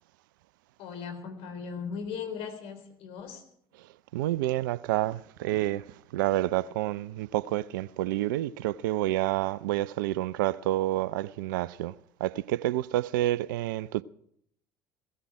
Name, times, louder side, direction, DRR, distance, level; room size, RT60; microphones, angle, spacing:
voice 1, 0.8-3.5, left 6 dB, 60° left, 3.9 m, -38 dB
voice 2, 4.1-5.8 6.1-11.9 12.2-14.0, right 15 dB, 70° right, 0.5 m, -28 dB
17.0 x 15.0 x 4.8 m
hypercardioid pair, 70°, 11 cm